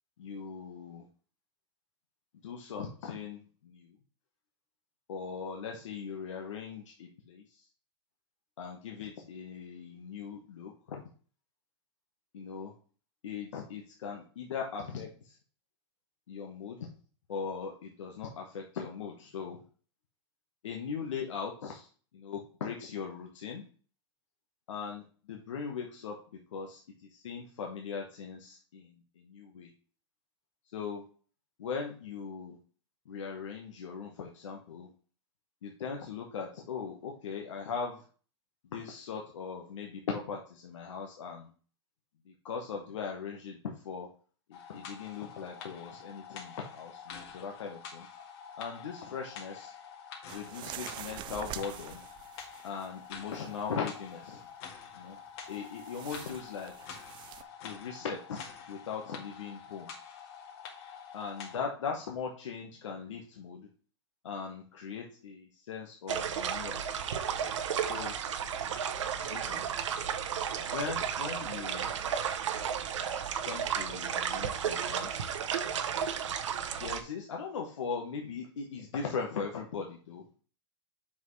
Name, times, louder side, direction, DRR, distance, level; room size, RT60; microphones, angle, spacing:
voice 1, 0.2-1.0 2.4-4.0 5.1-7.6 8.6-11.0 12.3-12.7 13.2-15.4 16.3-16.9 17.3-19.6 20.6-21.9 22.1-23.6 24.7-26.2 26.5-29.7 30.7-31.0 31.6-32.6 33.1-34.9 35.6-38.0 38.7-41.5 42.3-44.1 44.5-48.1 48.6-49.7 50.3-52.0 52.6-54.4 54.9-55.1 55.5-56.7 57.6-59.9 61.1-63.7 64.2-66.8 67.8-68.1 69.2-69.6 70.7-71.9 73.4-75.3 76.8-80.4, left 6 dB, 90° left, 1 dB, 1.3 m, -39 dB
sound 1, 44.5-61.6, left 6 dB, 60° left, 1.9 m, -47 dB
sound 2, 50.3-53.0 53.3-54.0 55.5-57.4, right 12 dB, 30° right, 0.5 m, -45 dB
sound 3, 66.1-77.0, right 8 dB, 90° right, 0.8 m, -33 dB
7.4 x 6.0 x 3.2 m, 0.40 s
hypercardioid pair, 135°, 15 cm